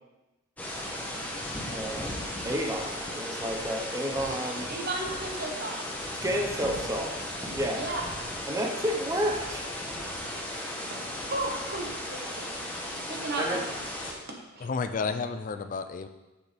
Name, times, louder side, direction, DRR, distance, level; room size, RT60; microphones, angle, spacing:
sound 1, 0.6-14.1, left 1 dB, 10° left, 1.0 m, -36 dB
voice 1, 1.7-2.2 2.4-4.7 6.2-7.2 7.5-7.8 8.4-9.6 13.4-13.6, equal, 15° right, 2 dB, 0.7 m, -30 dB
voice 2, 4.7-5.8 7.7-8.0 10.2-10.3 10.9-12.5 13.0-13.6 14.3-14.7, right 2 dB, 50° right, 1 dB, 1.2 m, -35 dB
voice 3, 14.6-16.1, left 4 dB, 40° left, 10 dB, 0.3 m, -31 dB
7.7 x 6.5 x 3.4 m, 1.1 s
head